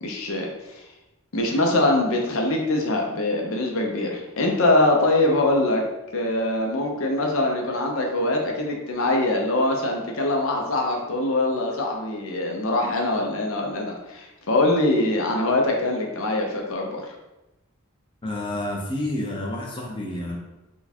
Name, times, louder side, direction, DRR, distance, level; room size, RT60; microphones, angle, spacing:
voice 1, 0.0-0.8 1.3-5.9 6.1-17.1, left 2 dB, 65° left, 1 dB, 0.7 m, -23 dB
voice 2, 18.2-20.4, left 1 dB, 20° left, -3 dB, 0.6 m, -29 dB
4.5 x 2.2 x 4.3 m, 1.0 s
head